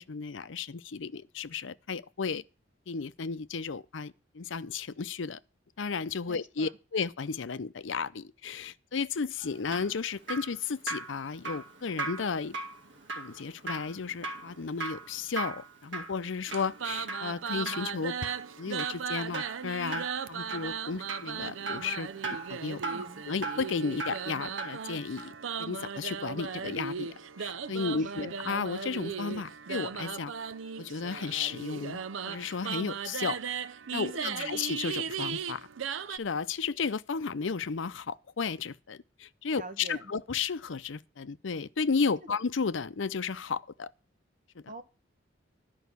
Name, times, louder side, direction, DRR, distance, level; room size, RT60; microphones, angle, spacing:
voice 1, 0.0-2.4 2.9-5.4 5.8-12.5 13.2-18.1 18.6-22.8 23.3-25.3 25.6-27.1 27.4-30.3 30.8-33.4 33.9-35.6 36.1-43.9, left 5 dB, 75° left, 0.6 m, -33 dB
voice 2, 6.3-6.7 22.7-23.2 28.0-28.4 34.0-34.5 39.5-40.1 44.7-44.8, right 1 dB, 45° right, 1.4 m, -45 dB
Drip, 9.4-24.9 25.2-25.3, right 3 dB, 70° right, 2.4 m, -39 dB
sound 1, 16.5-36.2, right 6 dB, 90° right, 0.6 m, -37 dB
11.5 x 5.6 x 8.2 m
head